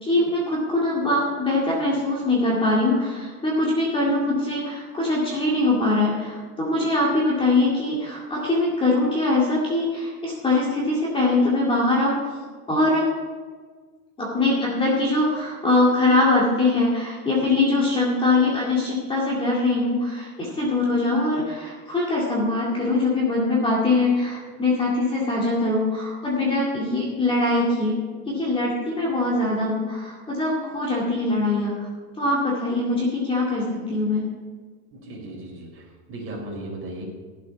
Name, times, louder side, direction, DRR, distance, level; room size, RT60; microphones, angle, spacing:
voice 1, 0.0-12.2 12.7-13.1 14.2-31.7 32.2-34.2, left 2 dB, 10° left, -5 dB, 2.2 m, -22 dB
voice 2, 34.9-35.8 36.1-37.1, right 1 dB, 30° right, -2 dB, 4.3 m, -36 dB
14.5 x 7.7 x 5.9 m, 1.5 s
supercardioid pair, 150°, 43 cm